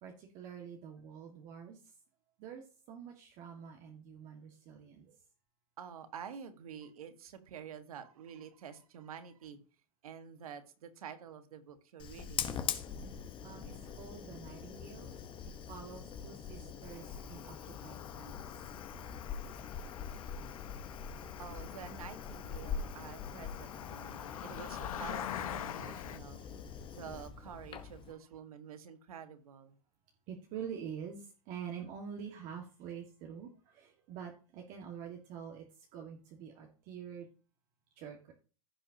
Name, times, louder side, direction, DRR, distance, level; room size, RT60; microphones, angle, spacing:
voice 1, 0.0-1.8 2.4-5.1 13.4-15.2 15.4-18.5 30.3-35.7 35.9-37.3 38.0-38.3, right 7 dB, 45° right, 1.7 m, -46 dB
voice 2, 5.8-9.6 10.0-12.6 21.4-26.5 26.9-29.7, right 8 dB, 80° right, 1.5 m, -48 dB
Fire, 12.0-28.1, left 7 dB, 30° left, 1.0 m, -43 dB
Cricket, 16.8-26.2, left 10 dB, 75° left, 1.1 m, -45 dB
15.5 x 5.7 x 2.8 m
hypercardioid pair, 115°, 18 cm